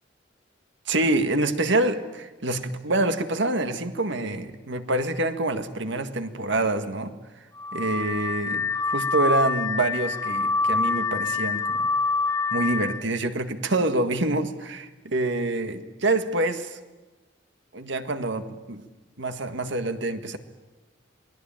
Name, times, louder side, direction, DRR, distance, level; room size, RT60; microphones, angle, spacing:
voice 1, 0.9-7.1 7.7-11.8 12.5-16.8 17.7-18.8 19.2-20.4, right 2 dB, 65° right, 9 dB, 1.8 m, -26 dB
Car / Alarm, 7.6-13.0, left 4 dB, 15° left, 1.1 m, -26 dB
27.5 x 21.0 x 9.0 m, 1.2 s
head